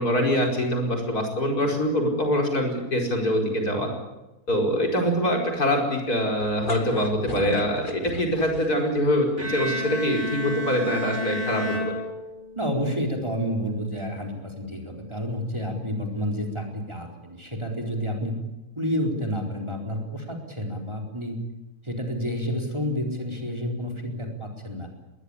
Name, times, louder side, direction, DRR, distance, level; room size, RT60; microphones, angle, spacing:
voice 1, 0.0-3.9 4.5-11.9, equal, 80° left, 2 dB, 5.5 m, -24 dB
sound 1, 6.4-9.0, left 2 dB, 35° left, 2.2 m, -35 dB
Bowed string instrument, 9.4-12.7, equal, 35° right, 5.1 m, -31 dB
voice 2, 12.6-18.4 18.8-21.4 21.8-24.9, equal, 20° right, 1 dB, 4.4 m, -29 dB
21.5 x 19.5 x 9.9 m, 1.0 s
omnidirectional pair, 1.6 m